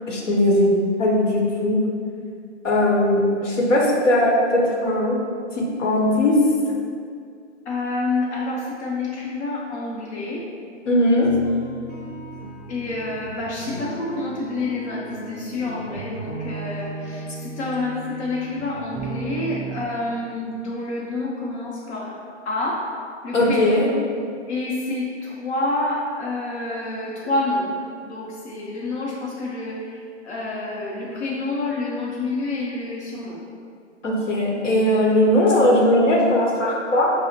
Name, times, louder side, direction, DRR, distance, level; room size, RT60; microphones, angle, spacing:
voice 1, 0.1-0.7 1.0-1.8 2.6-5.2 5.5-6.4 10.9-11.3 23.3-23.9 34.0-37.1, left 1 dB, 85° left, -3 dB, 1.0 m, -19 dB
voice 2, 7.7-10.4 12.7-22.2 22.5-22.9 23.2-23.8 24.5-27.7 28.0-33.4, left 2 dB, 65° left, -5 dB, 0.7 m, -28 dB
sound 1, 11.2-19.8, right 3 dB, 10° right, 0.4 m, -36 dB
5.0 x 2.1 x 2.7 m, 2.2 s
hypercardioid pair, 155°, 36 cm